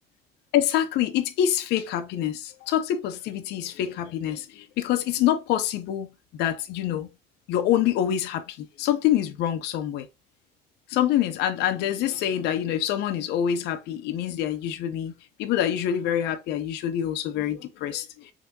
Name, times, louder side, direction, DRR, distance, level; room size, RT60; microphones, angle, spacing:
voice 1, 0.5-6.1 6.4-7.1 7.5-10.1 10.9-18.1, left 11 dB, 80° left, 0.5 m, -26 dB
3.6 x 2.8 x 2.6 m
cardioid pair, 110°, 17 cm